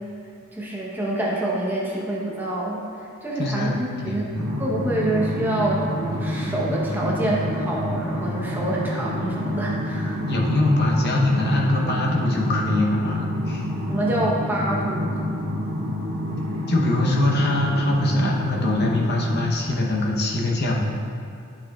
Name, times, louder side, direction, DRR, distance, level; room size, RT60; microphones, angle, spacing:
voice 1, 0.5-4.3 4.6-10.2 13.9-15.3, right 1 dB, 10° right, -4 dB, 0.8 m, -27 dB
voice 2, 3.4-3.8 4.0-4.6 4.9-5.0 10.3-13.7 16.7-20.9, left 1 dB, 50° left, -2 dB, 0.8 m, -23 dB
sound 1, 4.3-19.4, left 1 dB, 85° right, 1.3 m, -28 dB
8.7 x 5.8 x 2.3 m, 2.4 s
head